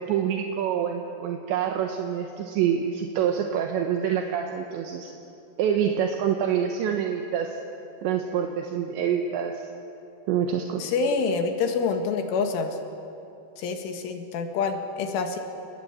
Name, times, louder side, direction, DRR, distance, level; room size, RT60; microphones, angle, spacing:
voice 1, 0.0-5.1 5.6-7.6 8.0-9.7 10.3-10.9, right 8 dB, 75° right, 3 dB, 3.2 m, -26 dB
voice 2, 10.8-12.7 13.6-15.4, left 5 dB, 80° left, 5 dB, 4.2 m, -27 dB
29.0 x 21.0 x 8.6 m, 2.8 s
omnidirectional pair, 5.6 m